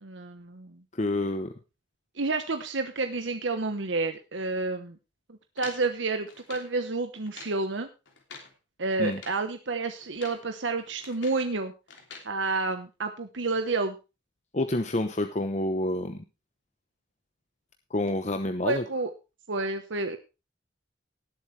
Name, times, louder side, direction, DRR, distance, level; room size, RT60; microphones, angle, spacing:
voice 1, 0.0-0.8 2.2-4.9 5.6-7.9 8.8-11.7 12.2-14.0 18.6-19.1 19.5-20.2, right 3 dB, 85° right, 6 dB, 1.1 m, -30 dB
voice 2, 0.9-1.5 9.0-9.2 14.5-16.2 17.9-18.8, left 1 dB, 40° left, 7 dB, 0.9 m, -28 dB
sound 1, 5.6-6.7 7.2-7.6 8.1-8.5 9.0-9.5 10.0-10.5 10.8-11.5 11.9-12.3, left 5 dB, 80° left, 3.1 m, -46 dB
18.5 x 8.1 x 3.3 m, 0.29 s
head